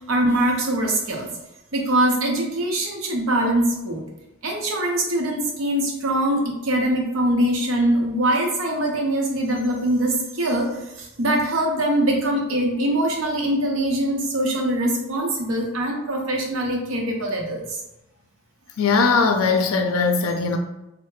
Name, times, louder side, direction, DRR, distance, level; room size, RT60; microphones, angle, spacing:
voice 1, 0.1-1.3 1.7-4.0 4.4-17.8, right 1 dB, 75° right, 0 dB, 0.7 m, -23 dB
voice 2, 18.8-20.6, left 4 dB, 80° left, 5 dB, 0.4 m, -20 dB
3.1 x 2.0 x 3.2 m, 0.94 s
head